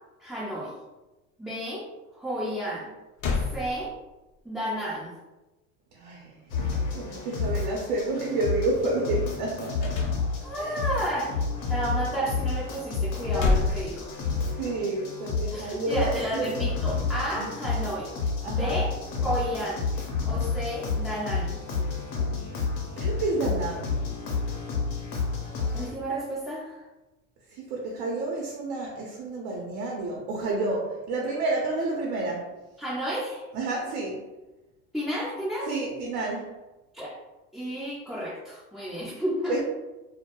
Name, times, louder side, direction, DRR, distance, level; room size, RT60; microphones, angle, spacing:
voice 1, 0.2-0.7 1.4-1.9 2.1-2.9 3.5-3.9 4.4-5.1 10.4-11.3 11.7-14.1 15.5-18.1 18.4-18.9 19.2-19.8 20.3-21.6 25.7-26.8 32.8-33.4 34.9-35.8 36.9-37.2 37.5-39.6, right 1 dB, ahead, -9 dB, 0.4 m, -31 dB
sound 1, 2.8-2.9 3.2-4.3 9.8-10.7 13.0-14.6, left 3 dB, 45° left, 0.6 m, -29 dB
voice 2, 5.9-6.3 6.8-10.1 10.6-10.7 14.6-16.6 17.3-17.5 18.4-18.8 23.0-23.9 27.6-32.5 33.5-34.2 35.7-36.5 39.5-39.6, right 2 dB, 65° right, -2 dB, 0.7 m, -30 dB
sound 2, 6.5-25.9, left 4 dB, 75° left, 0.8 m, -30 dB
2.1 x 2.1 x 2.8 m, 1.1 s
supercardioid pair, 95°, 40 cm